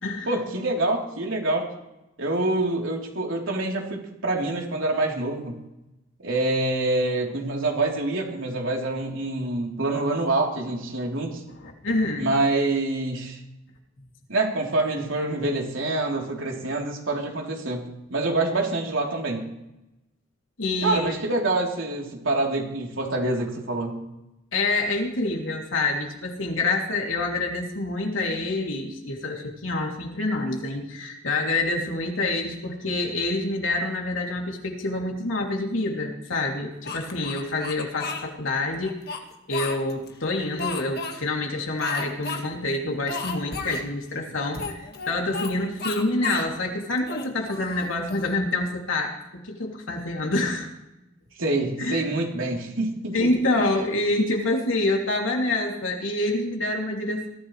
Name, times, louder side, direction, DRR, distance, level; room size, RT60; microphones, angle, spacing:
voice 1, 0.3-1.7 2.2-5.6 6.2-11.4 12.2-13.4 14.3-19.5 20.8-24.0 51.4-53.3 53.6-53.7, right 2 dB, 85° right, -1 dB, 3.5 m, -26 dB
voice 2, 11.6-12.3 20.6-21.1 24.5-39.0 39.5-50.7 51.8-52.0 53.1-57.3, left 2 dB, 85° left, 1 dB, 2.9 m, -27 dB
Speech, 36.8-38.2 38.8-40.1 40.6-41.2 41.8-42.4 42.7-42.8 43.1-43.8 44.5-45.5 45.8-46.5 47.0-48.3, left 4 dB, 55° left, 1.8 m, -33 dB
21.5 x 14.0 x 3.3 m, 0.92 s
head